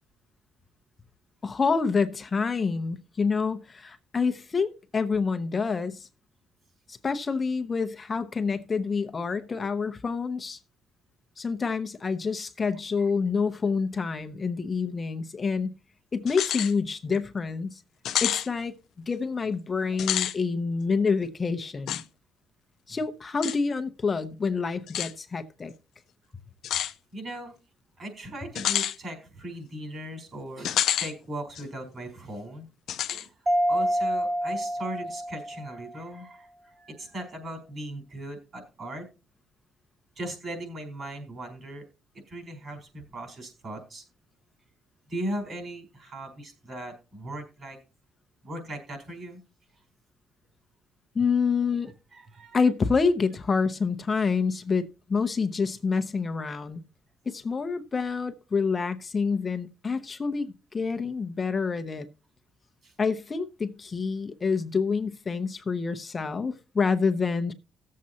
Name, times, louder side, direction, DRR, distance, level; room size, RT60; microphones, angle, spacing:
voice 1, 1.4-6.1 6.9-10.6 11.4-15.7 16.1-17.8 18.2-18.7 19.1-22.0 22.9-25.7 51.1-51.9 52.5-56.8 57.3-62.1 63.0-67.5, left 5 dB, 35° left, 0.8 m, -27 dB
sound 1, 16.3-16.7 17.1-17.2 18.1-18.5 19.9-20.4 21.9-22.0 23.4-23.6 24.9-25.1 26.6-26.9 28.6-29.0 30.6-31.1 31.6-31.7 32.9-33.3, left 10 dB, 75° left, 0.6 m, -28 dB
voice 2, 27.1-27.6 28.0-32.7 33.1-33.3 33.7-39.1 40.2-41.8 42.3-44.0 45.1-47.8 48.4-49.4 52.1-52.6 62.8-62.9, right 1 dB, 50° right, 4.4 m, -38 dB
Mallet percussion, 33.5-36.0, equal, 25° right, 0.8 m, -27 dB
17.0 x 7.5 x 2.8 m
cardioid pair, 90°, 0 cm